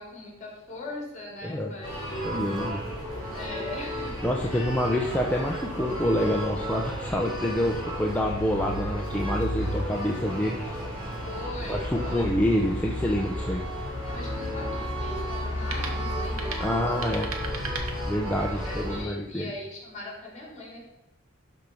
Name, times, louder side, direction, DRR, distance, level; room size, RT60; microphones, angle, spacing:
voice 1, 0.0-2.3 3.3-5.2 11.2-12.3 14.1-16.9 17.4-17.8 18.5-20.8, left 1 dB, 35° left, -1 dB, 3.5 m, -40 dB
voice 2, 1.4-1.7 2.2-2.8 4.2-10.7 11.7-13.6 16.6-17.3 18.1-19.5, equal, 5° left, -2 dB, 0.8 m, -27 dB
sound 1, 1.8-19.0, equal, 20° right, 3.6 m, -33 dB
sound 2, 15.6-18.6, right 4 dB, 90° right, 1.5 m, -40 dB
12.0 x 4.6 x 5.4 m, 0.95 s
head